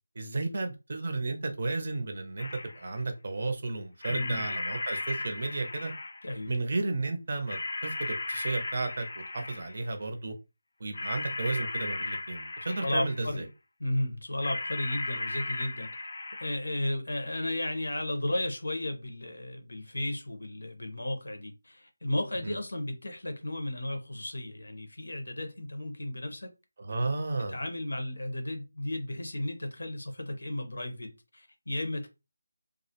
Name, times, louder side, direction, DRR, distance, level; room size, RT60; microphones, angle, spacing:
voice 1, 0.2-2.5 2.7-5.9 6.5-10.3 10.8-13.5 22.4-22.5 26.8-27.6, right 3 dB, 40° right, 0.5 m, -33 dB
sound 1, 2.4-3.0 4.0-6.4 7.5-9.9 10.9-13.4 14.4-16.6, left 2 dB, 55° left, 0.4 m, -36 dB
voice 2, 4.1-4.5 6.2-6.5 12.6-13.4 13.8-15.9 16.4-26.5 27.4-32.1, left 1 dB, 90° left, 0.8 m, -34 dB
2.4 x 2.0 x 2.8 m
figure-of-eight pair, 175°, 0 cm